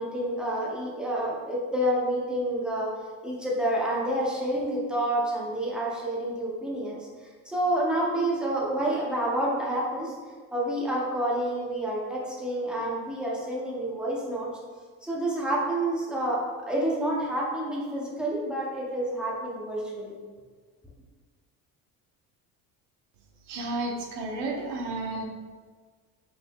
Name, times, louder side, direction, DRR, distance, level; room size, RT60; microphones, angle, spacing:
voice 1, 0.0-2.9 3.2-10.1 10.5-14.5 15.0-16.4 16.7-20.1, right 1 dB, ahead, -5 dB, 0.5 m, -28 dB
voice 2, 23.5-25.2, right 2 dB, 80° right, 1 dB, 0.9 m, -32 dB
5.4 x 3.6 x 2.2 m, 1.5 s
cardioid pair, 170°, 40 cm